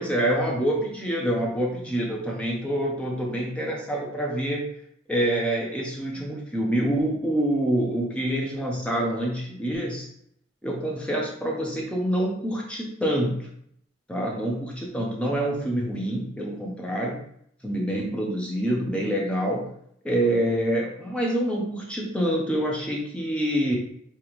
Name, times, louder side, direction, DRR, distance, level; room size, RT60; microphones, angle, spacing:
voice 1, 0.0-4.6 5.1-10.1 10.6-13.5 14.1-17.2 17.6-19.7 20.0-23.8, right 1 dB, 5° left, -2 dB, 0.6 m, -26 dB
5.1 x 2.9 x 3.1 m, 0.69 s
head